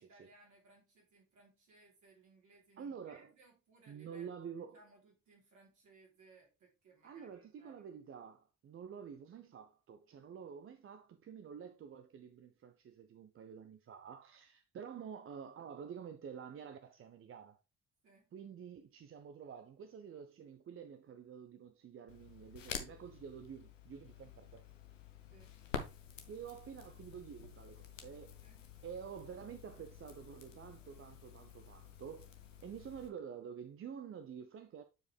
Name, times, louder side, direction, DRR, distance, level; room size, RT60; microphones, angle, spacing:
voice 1, 0.0-4.3 4.7-7.9 18.0-18.3 25.3-25.6 28.4-28.6, right 3 dB, 55° right, 3.6 m, -64 dB
voice 2, 2.8-3.3 3.9-4.8 7.0-17.6 18.3-24.6 26.3-28.4 28.8-32.3 32.6-34.8, right 7 dB, 35° right, 0.7 m, -49 dB
Crackle, 22.1-33.1, left 7 dB, 80° left, 0.7 m, -49 dB
7.8 x 4.8 x 3.3 m
figure-of-eight pair, 40°, 37 cm